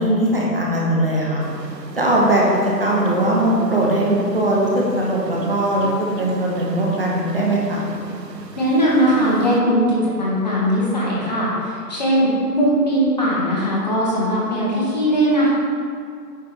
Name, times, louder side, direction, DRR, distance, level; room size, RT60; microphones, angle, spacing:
voice 1, 0.0-1.4 1.9-7.8, right 1 dB, 35° right, -4 dB, 1.1 m, -19 dB
sound 1, 1.4-9.6, right 3 dB, 85° right, 1.0 m, -38 dB
voice 2, 8.6-15.5, equal, 25° left, -7 dB, 1.4 m, -19 dB
9.1 x 4.5 x 5.0 m, 2.3 s
figure-of-eight pair, 165°, 48 cm